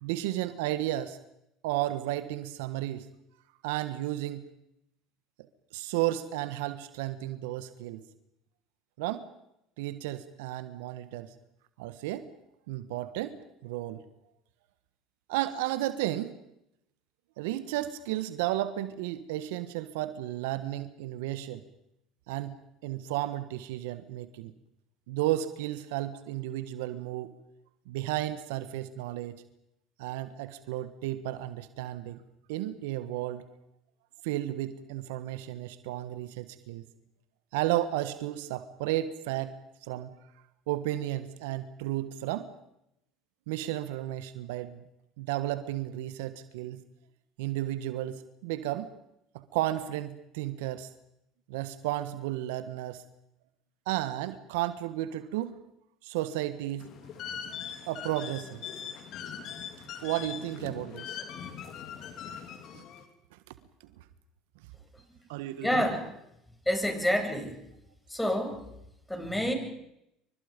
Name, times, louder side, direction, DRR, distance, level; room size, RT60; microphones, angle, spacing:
voice 1, 0.0-1.2 1.6-3.1 3.6-4.4 5.7-8.0 9.0-9.2 9.8-11.3 11.8-12.3 12.7-14.0 15.3-16.4 17.4-21.6 22.3-22.6 22.8-24.5 25.1-27.3 27.9-29.4 30.0-32.2 32.5-33.4 34.2-36.9 37.5-39.5 39.9-40.1 40.7-42.5 43.5-44.8 45.2-46.8 47.4-48.9 49.3-50.9 51.5-53.0 53.9-55.6 56.0-56.9 57.9-58.6 60.0-61.2 62.7-62.8 65.3-65.9, right 14 dB, 75° right, 12 dB, 1.4 m, -33 dB
sound 1, 56.8-63.0, left 8 dB, 55° left, 3.9 m, -41 dB
voice 2, 65.6-66.0 66.7-67.6 68.1-68.6 69.1-69.5, equal, 5° left, 4 dB, 7.8 m, -28 dB
29.0 x 24.5 x 5.3 m, 0.82 s
hypercardioid pair, 75°, 0 cm